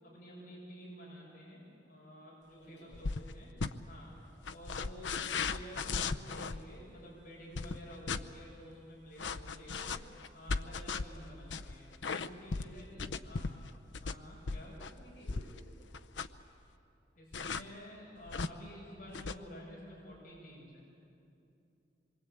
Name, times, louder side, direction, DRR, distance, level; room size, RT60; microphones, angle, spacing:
voice 1, 0.0-3.5 3.9-4.1 4.5-10.0 10.3-12.9 13.2-13.5 14.0-14.8 17.2-20.8, equal, 50° left, -5 dB, 7.1 m, -51 dB
voice 2, 2.6-3.0 11.1-11.7 12.9-13.1 14.6-15.7, equal, 70° left, -2 dB, 7.8 m, -57 dB
sound 1, 2.9-3.3 3.6-3.7 4.4-6.6 7.6-8.2 9.2-15.6 15.9-16.4 17.3-17.6 18.3-18.5 19.1-19.4, left 4 dB, 85° left, 0.7 m, -37 dB
26.5 x 23.5 x 8.8 m, 2.7 s
head